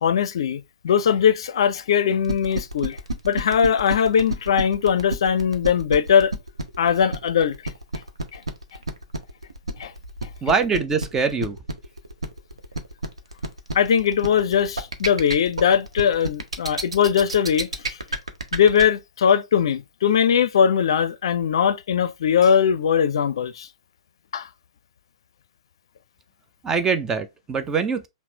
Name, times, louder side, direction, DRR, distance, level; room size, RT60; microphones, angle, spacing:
voice 1, 0.0-3.0 3.2-6.3 6.8-7.7 8.3-8.4 9.8-9.9 13.7-18.0 18.5-23.7 24.3-24.5, left 7 dB, 65° left, 0.5 m, -20 dB
sound 1, 2.2-18.8, right 1 dB, 85° right, 0.8 m, -29 dB
voice 2, 10.4-11.6 26.6-28.1, right 5 dB, 15° right, 0.5 m, -23 dB
5.8 x 2.1 x 2.8 m
figure-of-eight pair, 115°, 3 cm